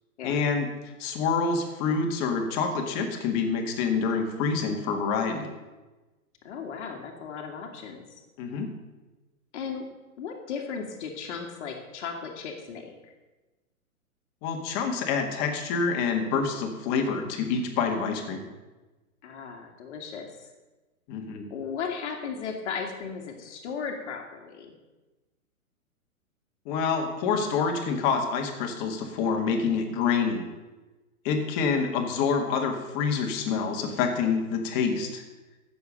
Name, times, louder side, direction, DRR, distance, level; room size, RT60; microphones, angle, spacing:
voice 1, 0.2-0.7 1.0-5.5 8.4-8.7 14.4-18.4 21.1-21.5 26.7-30.4 31.2-35.2, left 5 dB, 35° left, 3 dB, 1.9 m, -27 dB
voice 2, 6.4-8.2 9.5-9.9 10.2-13.1 19.2-20.5 21.5-24.7, left 6 dB, 50° left, 2 dB, 2.0 m, -36 dB
15.5 x 7.2 x 5.2 m, 1.2 s
hypercardioid pair, 130°, 43 cm